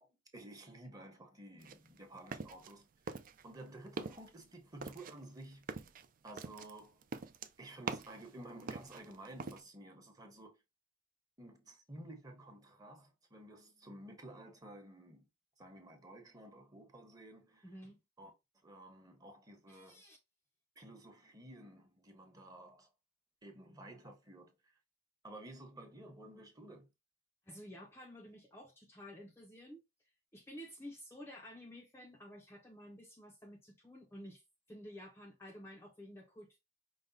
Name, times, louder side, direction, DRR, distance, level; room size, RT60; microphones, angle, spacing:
voice 1, 0.0-5.7 6.2-7.1 7.6-10.6 11.4-15.3 15.6-17.7 18.2-18.3 18.6-20.0 20.8-22.9 23.4-24.8 25.2-26.9, right 1 dB, 20° right, 1.0 m, -53 dB
sound 1, 1.6-2.8 3.1-3.6 3.9-4.3 4.8-8.3 8.6-9.6, right 4 dB, 45° right, 0.4 m, -44 dB
voice 2, 17.6-18.0 19.7-20.2 27.5-29.8 30.3-34.4 34.7-36.6, equal, 15° left, 0.5 m, -52 dB
5.1 x 2.1 x 3.9 m
head